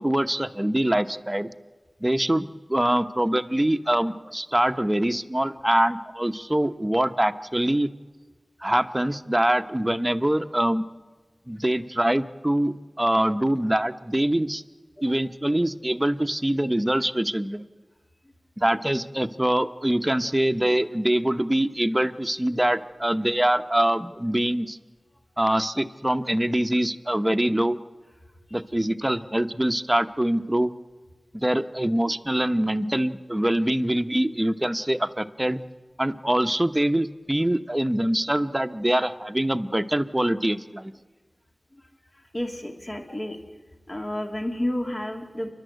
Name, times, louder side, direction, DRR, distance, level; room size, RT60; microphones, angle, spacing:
voice 1, 0.0-1.5 2.0-7.9 8.6-10.9 11.5-14.6 15.0-17.6 18.6-24.8 25.4-27.8 28.5-30.7 31.3-35.6 36.0-40.9, right 1 dB, 20° right, 8 dB, 0.9 m, -24 dB
voice 2, 42.1-43.4 43.9-45.5, left 1 dB, 40° left, 2 dB, 2.4 m, -31 dB
29.0 x 12.0 x 8.0 m, 1.3 s
wide cardioid pair, 45°, 0 cm